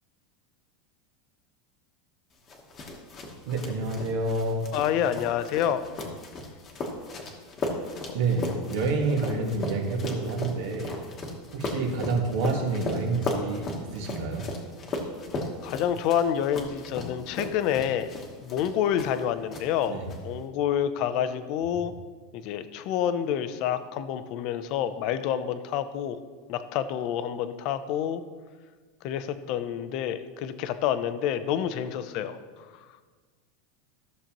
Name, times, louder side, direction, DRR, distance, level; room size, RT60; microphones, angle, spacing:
sound 1, 2.5-19.2 19.5-20.2, left 2 dB, 20° left, 1.1 m, -36 dB
voice 1, 3.4-4.7 8.1-11.0 11.5-14.5 19.9-20.1, right 3 dB, 60° right, 2 dB, 1.6 m, -28 dB
voice 2, 4.7-5.8 8.1-8.2 11.7-11.9 15.6-18.1 18.4-21.9 22.3-26.2 26.5-28.2 29.0-32.4, left 9 dB, 40° left, 11 dB, 0.5 m, -28 dB
14.0 x 6.7 x 3.0 m, 1.5 s
supercardioid pair, 170°, 0 cm